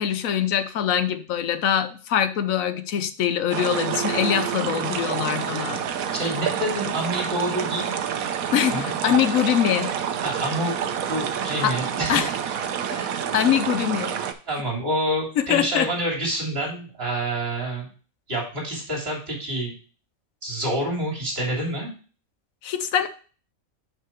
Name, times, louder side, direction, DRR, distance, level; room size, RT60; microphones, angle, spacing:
voice 1, 0.0-5.8 8.5-9.9 11.6-11.7 12.1-12.3 12.9-14.2 15.4-15.9 22.6-23.1, left 9 dB, 80° left, 10 dB, 1.1 m, -23 dB
sound 1, 3.5-14.3, right 8 dB, 85° right, 1.2 m, -28 dB
voice 2, 6.1-7.9 8.7-9.2 10.2-10.7 11.1-12.3 14.5-17.9 18.3-19.7 20.4-21.9, right 1 dB, 45° right, -2 dB, 3.3 m, -27 dB
6.1 x 5.6 x 4.5 m, 0.39 s
omnidirectional pair, 1.4 m